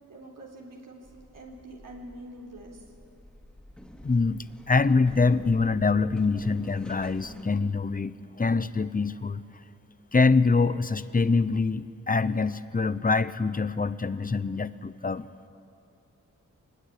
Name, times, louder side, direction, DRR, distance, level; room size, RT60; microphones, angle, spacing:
voice 1, 0.1-1.1 1.3-2.9, right 1 dB, 90° right, -2 dB, 3.9 m, -45 dB
sound 1, 1.1-7.4, left 1 dB, 5° left, 2.7 m, -48 dB
voice 2, 4.0-9.4 10.1-15.3, left 4 dB, 25° left, 15 dB, 0.8 m, -25 dB
23.5 x 20.0 x 10.0 m, 2.6 s
wide cardioid pair, 80°, 32 cm